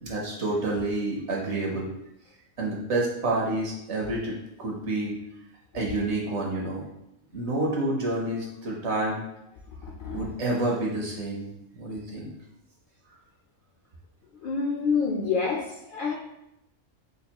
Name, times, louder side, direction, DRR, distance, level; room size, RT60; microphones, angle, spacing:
voice 1, 0.0-1.9 2.6-5.2 5.7-6.9 7.3-9.2 10.1-11.5 11.7-12.3, right 2 dB, 60° right, -2 dB, 1.0 m, -29 dB
voice 2, 14.4-16.1, left 5 dB, 60° left, -2 dB, 0.5 m, -27 dB
5.2 x 2.3 x 2.8 m, 0.83 s
omnidirectional pair, 1.3 m